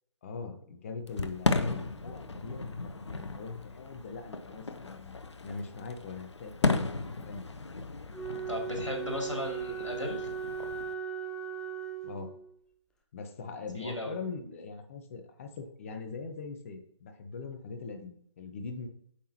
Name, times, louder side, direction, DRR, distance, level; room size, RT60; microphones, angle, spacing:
voice 1, 0.2-5.2 5.4-7.5 12.0-12.3 13.1-18.9, left 4 dB, 30° left, 6 dB, 0.9 m, -41 dB
Fireworks, 1.1-10.9, left 3 dB, 70° left, 0.7 m, -35 dB
Wind instrument woodwind instrument, 8.1-12.5, right 7 dB, 5° left, 0.4 m, -38 dB
voice 2, 8.5-10.3 13.7-14.2, left 1 dB, 85° left, 1 dB, 2.5 m, -36 dB
8.4 x 5.9 x 2.9 m, 0.65 s
figure-of-eight pair, 145°, 15 cm